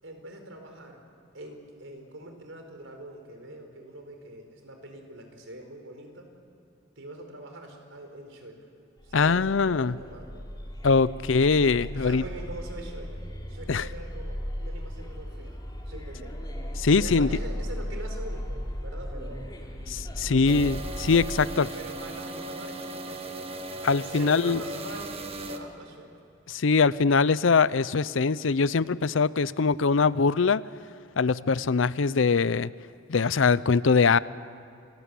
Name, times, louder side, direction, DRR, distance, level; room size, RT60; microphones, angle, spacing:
voice 1, 0.0-1.0 1.3-6.3 7.0-8.7 9.0-10.5 11.9-13.2 13.5-15.6 15.9-16.4 17.0-19.5 20.2-20.8 21.4-23.5 24.0-25.2 25.5-26.1, right 1 dB, 75° right, 4 dB, 4.6 m, -43 dB
sound 1, 9.0-21.3, equal, 20° left, 3.8 m, -36 dB
voice 2, 9.1-10.0 10.8-12.2 13.7-13.8 16.8-17.3 19.9-21.7 23.8-24.6 26.5-30.6 31.2-32.7 33.1-34.2, left 4 dB, 70° left, 18 dB, 0.6 m, -22 dB
sound 2, 20.5-25.6, right 2 dB, 30° right, 1.6 m, -37 dB
28.5 x 19.0 x 8.4 m, 2.7 s
head